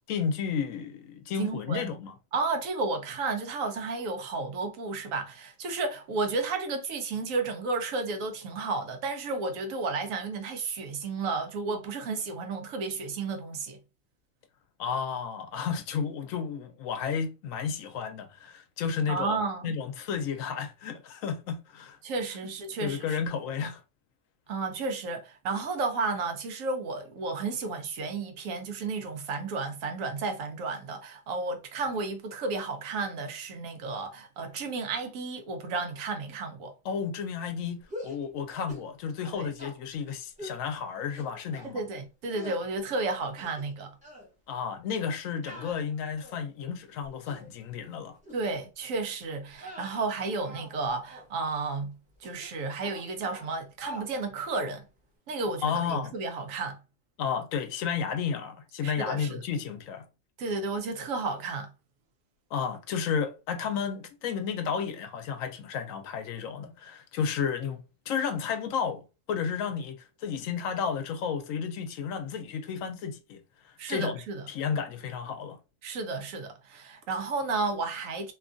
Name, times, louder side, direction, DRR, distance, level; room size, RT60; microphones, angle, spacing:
voice 1, 0.1-2.2 14.8-22.0 22.8-23.8 36.8-41.8 44.5-48.2 55.6-56.2 57.2-60.1 62.5-67.8 68.1-69.0 69.3-73.4 73.9-74.2 74.5-75.6, left 6 dB, 80° left, 1.0 m, -32 dB
voice 2, 1.4-1.9 2.3-13.8 19.1-19.7 22.0-23.2 24.5-36.7 39.3-39.5 41.6-43.9 48.3-51.9 52.2-54.9 55.3-56.8 58.8-59.4 60.4-61.7 73.8-74.4 75.8-78.3, right 3 dB, 80° right, 1.0 m, -32 dB
sound 1, 37.8-38.2 38.7-38.9 39.2-39.8 40.4-40.6 41.2-41.7 42.3-42.6 43.2-43.7 44.0-44.3 45.4-46.5 47.0-47.5 48.2-48.4 48.8-49.0 49.5-50.8 51.0-51.3 52.2-52.5 52.7-53.5 53.8-54.1, equal, 5° right, 0.7 m, -44 dB
2.8 x 2.3 x 2.5 m
omnidirectional pair, 1.4 m